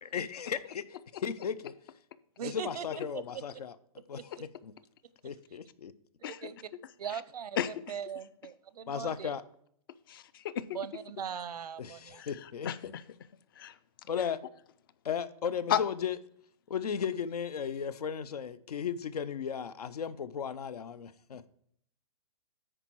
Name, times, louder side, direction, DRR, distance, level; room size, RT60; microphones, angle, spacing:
voice 1, 0.0-1.7 2.4-3.7 4.1-4.7 5.2-5.9 8.9-9.4 11.8-12.7 14.1-14.4 15.0-16.2 16.7-21.5, left 7 dB, 85° left, 0.7 m, -35 dB
voice 2, 2.4-2.9 3.1-3.2 6.4-6.6 7.0-9.3 10.7-12.2, right 8 dB, 90° right, 0.6 m, -40 dB
voice 3, 10.1-10.8 12.2-13.0 13.6-13.8 15.7-15.8, left 10 dB, 35° left, 0.4 m, -33 dB
9.9 x 4.6 x 4.6 m
hypercardioid pair, 160°, 19 cm